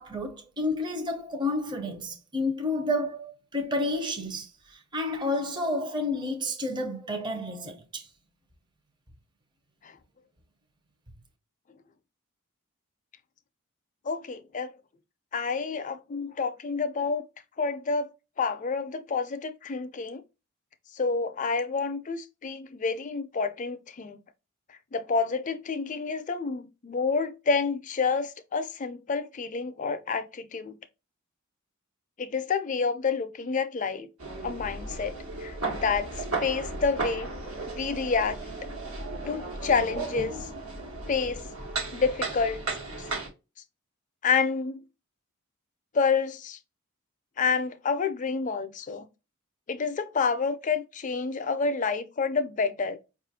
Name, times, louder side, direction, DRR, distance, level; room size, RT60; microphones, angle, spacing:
voice 1, 0.0-8.1, left 1 dB, 20° right, 0.6 m, -30 dB
voice 2, 14.1-14.7 15.3-17.3 17.6-18.1 18.4-20.2 20.9-24.2 24.9-30.7 32.2-34.1 34.4-35.1 35.4-36.1 36.4-37.3 37.8-38.4 39.2-40.4 41.1-41.4 41.9-42.7 44.2-44.8 45.9-46.6 47.4-49.0 49.7-53.0, left 5 dB, 35° left, 0.4 m, -28 dB
sound 1, 34.2-43.3, right 3 dB, 80° right, 1.2 m, -35 dB
5.0 x 2.4 x 2.7 m
head